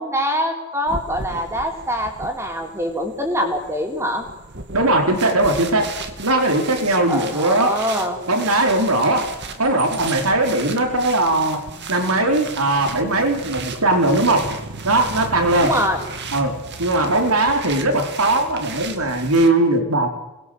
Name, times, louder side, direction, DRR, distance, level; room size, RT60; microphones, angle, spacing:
voice 1, 0.0-4.3 7.1-8.2 15.6-16.0, equal, 10° right, 3 dB, 4.1 m, -24 dB
sound 1, 0.9-19.5, right 4 dB, 50° right, 2.4 m, -35 dB
voice 2, 4.7-5.9 6.2-7.8 8.3-9.3 9.6-11.6 11.9-14.5 14.8-15.7 16.3-20.1, right 2 dB, 75° right, 4 dB, 4.6 m, -19 dB
28.5 x 21.5 x 8.1 m, 1.0 s
head